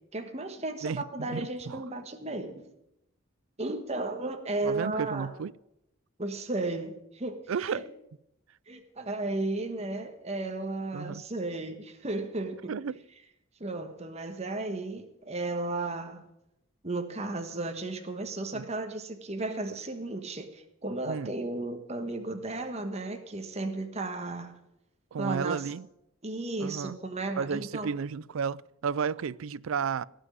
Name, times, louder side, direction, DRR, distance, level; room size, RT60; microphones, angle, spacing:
voice 1, 0.1-2.6 3.6-5.3 6.2-7.8 8.7-12.7 13.6-16.2 16.8-24.6 25.2-25.6 26.2-27.9, right 2 dB, 30° right, 1.4 m, -34 dB
voice 2, 0.8-1.8 4.6-5.5 7.5-7.8 10.9-11.2 12.7-13.0 18.5-18.7 21.1-21.3 25.1-25.9 26.6-27.0 27.4-30.0, right 6 dB, 80° right, 0.4 m, -33 dB
17.5 x 6.3 x 9.2 m
head